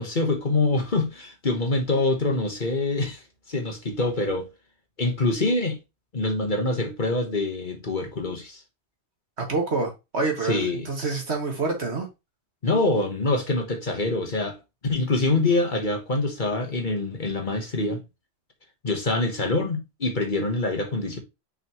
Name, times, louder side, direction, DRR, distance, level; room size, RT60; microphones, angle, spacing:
voice 1, 0.0-3.2 3.5-4.5 5.0-5.8 6.1-8.6 10.4-10.9 12.6-14.6 14.8-18.0 18.8-21.2, left 2 dB, 45° left, 1.3 m, -25 dB
voice 2, 9.4-12.1, right 3 dB, 65° right, 2.3 m, -27 dB
6.0 x 5.6 x 3.0 m
omnidirectional pair, 1.2 m